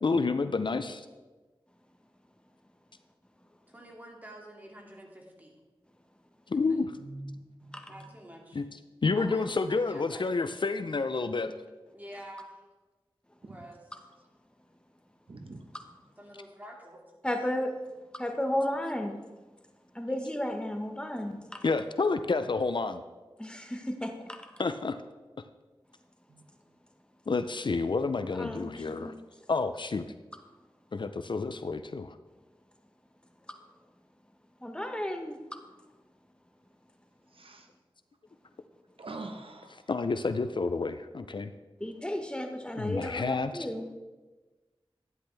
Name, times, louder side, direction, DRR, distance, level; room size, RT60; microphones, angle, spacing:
voice 1, 0.0-1.1 6.5-6.8 8.5-8.6 9.0-11.5 21.6-23.0 24.6-25.0 27.3-29.1 29.5-30.0 30.9-32.2 39.7-41.5 42.8-43.7, left 4 dB, 60° left, 10 dB, 0.5 m, -29 dB
voice 2, 3.7-5.6 6.5-6.8 7.9-8.6 9.2-10.3 11.9-12.7 13.4-13.9 16.2-17.0, equal, 20° right, -1 dB, 2.4 m, -47 dB
voice 3, 7.1-7.8 15.3-15.6 26.3-26.4 37.4-37.6 39.0-39.7, right 2 dB, 75° right, 4 dB, 1.2 m, -43 dB
voice 4, 17.2-17.7 18.2-19.2 19.9-21.6 23.4-24.4 28.4-29.1 34.6-35.4 40.7-40.8 41.8-43.9, left 1 dB, 10° left, 4 dB, 1.2 m, -33 dB
12.0 x 9.8 x 3.4 m, 1.2 s
wide cardioid pair, 65°, 9 cm